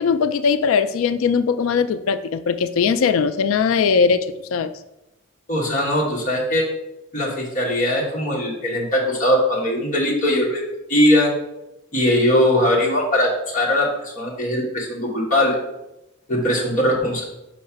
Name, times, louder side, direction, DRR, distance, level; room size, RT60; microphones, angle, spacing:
voice 1, 0.0-4.7, left 6 dB, 75° left, 11 dB, 0.3 m, -20 dB
voice 2, 5.5-6.7 7.1-10.6 10.9-11.3 11.9-15.5 16.3-17.2, left 1 dB, 40° left, -3 dB, 1.3 m, -20 dB
5.7 x 3.1 x 5.7 m, 0.90 s
head